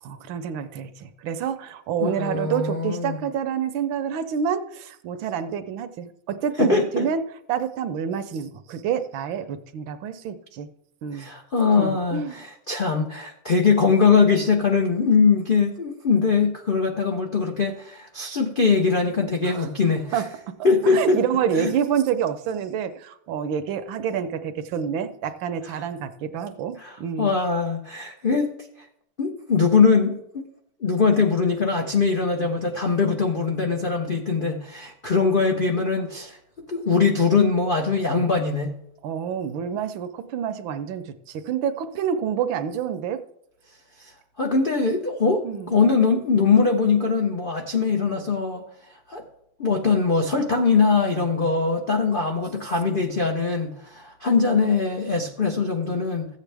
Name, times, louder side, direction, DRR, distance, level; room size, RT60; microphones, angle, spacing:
voice 1, 0.0-7.2 7.5-10.7 11.0-11.3 11.8-12.5 19.4-19.7 20.1-20.5 20.9-27.3 39.0-43.2 45.4-45.8, right 8 dB, 75° right, 10 dB, 1.3 m, -28 dB
voice 2, 2.0-3.2 6.6-7.1 11.1-20.2 20.6-21.2 21.5-21.7 26.8-28.5 29.2-30.4 30.8-36.4 36.7-38.7 44.4-48.6 49.1-49.2 49.6-56.3, left 5 dB, 85° left, 1 dB, 0.4 m, -22 dB
14.5 x 8.1 x 3.4 m, 0.74 s
omnidirectional pair, 2.4 m